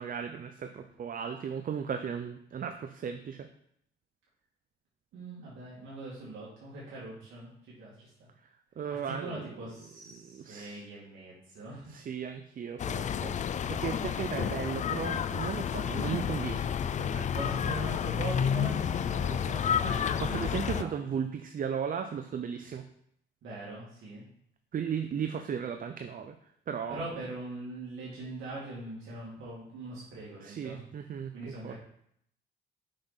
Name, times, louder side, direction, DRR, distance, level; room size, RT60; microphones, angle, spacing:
voice 1, 0.0-3.5 8.4-9.5 10.1-10.8 11.9-17.3 17.6-17.8 20.2-22.9 24.7-26.3 26.7-27.1 30.4-31.7, right 7 dB, 45° right, 7 dB, 0.6 m, -36 dB
voice 2, 5.1-8.3 9.1-12.0 17.3-20.4 20.7-20.9 23.4-24.2 26.9-30.8 31.3-31.7, right 2 dB, 80° right, -7 dB, 2.2 m, -41 dB
sound 1, 12.8-20.8, left 8 dB, 40° left, 0.4 m, -30 dB
6.5 x 5.9 x 4.1 m, 0.71 s
cardioid pair, 90°, 20 cm